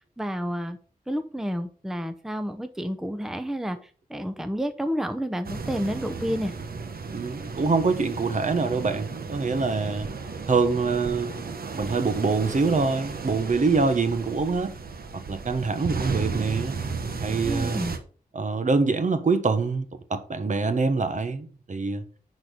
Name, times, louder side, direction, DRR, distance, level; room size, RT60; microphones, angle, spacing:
voice 1, 0.2-0.8 1.1-3.8 4.1-6.5 17.4-17.9, equal, 5° right, 0.7 m, -30 dB
sound 1, 5.4-18.0, right 4 dB, 80° right, 1.2 m, -34 dB
voice 2, 7.1-10.1 10.5-11.3 11.8-14.7 15.1-16.8 17.2-17.8 18.3-22.0, right 4 dB, 55° right, 1.2 m, -25 dB
10.5 x 4.4 x 5.2 m
wide cardioid pair, 115°, 15 cm